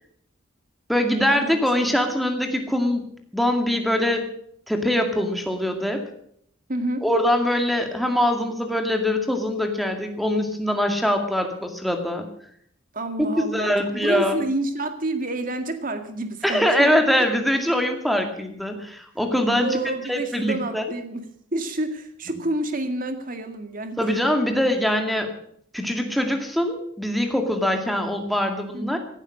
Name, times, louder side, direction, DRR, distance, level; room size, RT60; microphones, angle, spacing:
voice 1, 0.9-4.3 4.7-6.0 7.0-12.3 13.5-14.4 16.4-19.8 20.1-20.8 24.0-25.3 25.7-29.0, left 1 dB, ahead, 4 dB, 2.2 m, -23 dB
voice 2, 6.7-7.0 12.9-16.9 19.6-24.1 28.7-29.0, right 1 dB, 40° right, 8 dB, 2.0 m, -29 dB
16.5 x 12.0 x 6.3 m, 0.66 s
head